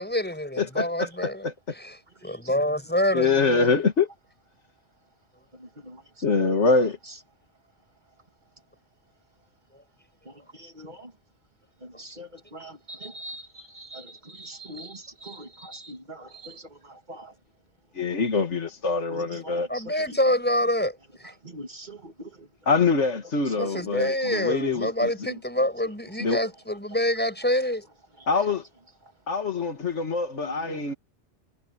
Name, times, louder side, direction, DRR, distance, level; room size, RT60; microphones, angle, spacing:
voice 1, 0.0-1.4 1.8-1.9 2.2-3.7 19.7-21.0 21.2-21.3 23.6-27.9, left 1 dB, 10° left, 6.6 m, -26 dB
voice 2, 0.6-1.5 3.1-4.1 6.2-7.0 17.9-19.7 22.7-25.3 26.2-26.4 28.3-28.6 29.3-30.9, left 4 dB, 80° left, 2.2 m, -24 dB
voice 3, 5.6-6.4 10.3-11.1 11.8-17.3 19.1-19.8 20.1-20.2 21.4-22.5 23.8-23.9 25.3-25.4 30.4-30.9, right 1 dB, 40° right, 2.6 m, -43 dB
omnidirectional pair, 1.2 m